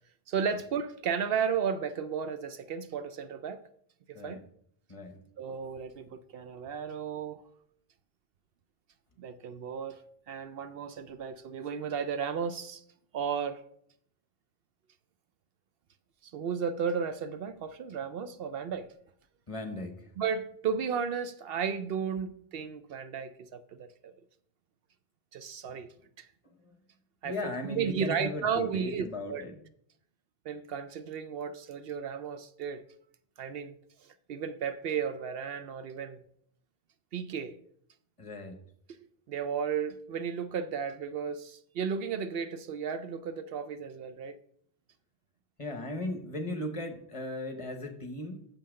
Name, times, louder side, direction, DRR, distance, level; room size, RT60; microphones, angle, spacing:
voice 1, 0.3-3.6 4.1-4.4 5.4-7.4 9.2-10.0 10.3-12.8 13.1-13.6 16.2-18.9 20.2-24.1 25.3-25.9 26.2-26.3 27.2-27.4 27.7-29.4 30.5-32.8 33.4-33.7 34.0-36.2 37.1-37.6 39.0-44.4, right 7 dB, 70° right, 0.8 m, -34 dB
voice 2, 4.1-4.4 4.9-5.2 19.5-20.1 25.7-25.8 26.4-26.8 27.2-29.6 38.2-38.6 45.6-48.5, left 1 dB, 35° left, 1.0 m, -37 dB
7.0 x 5.6 x 6.3 m
omnidirectional pair, 1.1 m